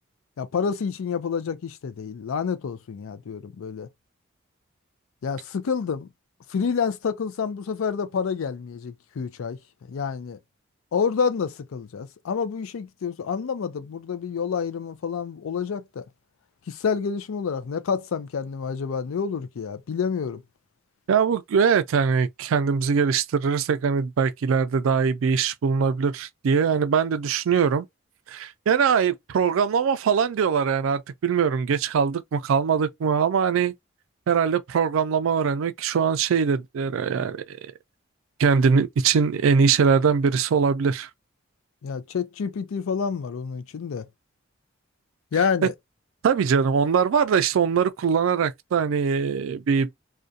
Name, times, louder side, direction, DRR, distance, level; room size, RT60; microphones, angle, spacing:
voice 1, 0.4-3.9 5.2-6.1 6.5-9.6 9.9-10.4 10.9-16.0 16.7-20.4 41.8-44.1 45.3-45.7, left 6 dB, 85° left, 0.4 m, -28 dB
voice 2, 21.1-27.9 28.3-33.7 34.3-37.6 38.4-41.1 46.2-49.9, right 6 dB, 80° right, 0.4 m, -22 dB
2.4 x 2.2 x 2.6 m
head